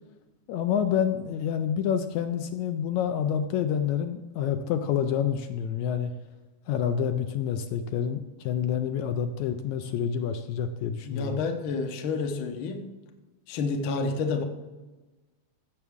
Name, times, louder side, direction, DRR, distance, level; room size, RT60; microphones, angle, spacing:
voice 1, 0.5-6.1 6.7-11.4, left 8 dB, 80° left, 7 dB, 1.8 m, -28 dB
voice 2, 11.0-12.8 13.5-14.4, left 4 dB, 60° left, 4 dB, 1.3 m, -29 dB
15.5 x 7.0 x 3.6 m, 1.2 s
omnidirectional pair, 3.5 m